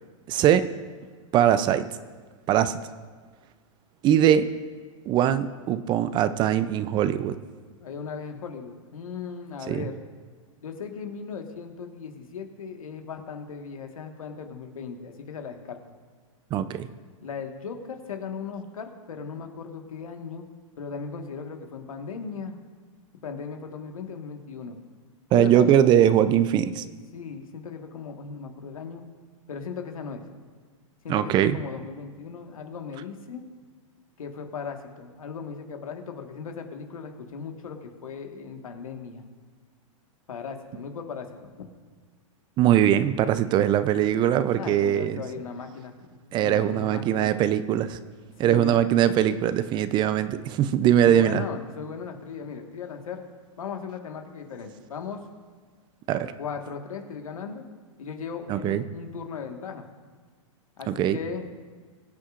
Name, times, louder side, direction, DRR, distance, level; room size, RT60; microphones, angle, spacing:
voice 1, 0.3-0.7 1.3-1.9 2.5-2.8 4.0-4.5 5.1-7.4 9.7-9.8 16.5-16.9 25.3-26.8 31.1-31.6 42.6-45.2 46.3-48.0 48.4-51.4 56.1-56.3 58.5-58.8 60.9-61.2, right 10 dB, 25° right, 13 dB, 0.4 m, -21 dB
voice 2, 7.8-10.0 10.6-15.8 17.2-22.6 23.2-24.8 25.3-25.7 27.1-29.0 29.5-30.3 31.0-33.4 34.2-39.2 40.3-41.7 44.5-46.0 46.4-47.3 48.4-48.8 51.0-53.2 53.6-55.2 56.4-57.6 58.0-59.9 60.8-61.5, left 6 dB, 85° left, 4 dB, 1.6 m, -37 dB
22.5 x 8.5 x 2.5 m, 1.5 s
hypercardioid pair, 130°, 17 cm